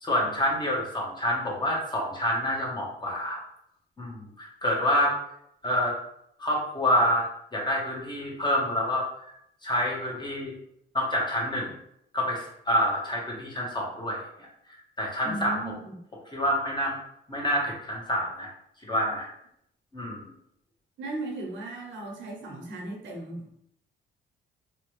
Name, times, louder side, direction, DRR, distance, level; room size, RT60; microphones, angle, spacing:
voice 1, 0.0-3.4 4.0-5.2 5.6-6.0 6.4-9.1 9.6-10.5 10.9-11.7 12.1-14.5 15.0-15.6 16.3-17.0 17.3-18.5 18.9-19.3 19.9-20.3, equal, 20° left, -2 dB, 0.9 m, -27 dB
voice 2, 15.2-16.0 21.0-23.5, right 2 dB, 70° right, 1 dB, 0.8 m, -36 dB
2.8 x 2.2 x 3.0 m, 0.74 s
cardioid pair, 90°, 20 cm